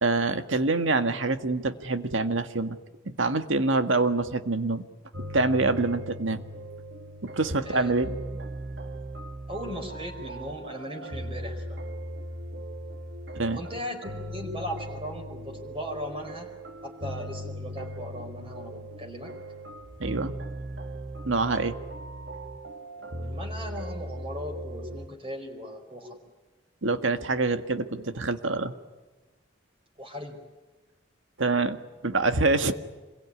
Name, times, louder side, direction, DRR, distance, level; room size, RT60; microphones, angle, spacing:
voice 1, 0.0-2.8 3.1-4.9 5.3-6.4 7.2-8.1 13.4-13.6 20.0-20.3 21.2-21.8 26.8-28.7 31.4-31.8 32.0-32.7, right 3 dB, 85° right, 8 dB, 1.8 m, -25 dB
sound 1, 5.1-25.1, right 1 dB, 60° right, 2.3 m, -38 dB
voice 2, 7.6-8.2 9.5-11.8 13.5-16.5 16.8-19.3 23.0-26.2 30.0-30.4, equal, 30° right, 2 dB, 4.7 m, -38 dB
27.0 x 22.0 x 9.8 m, 1.2 s
head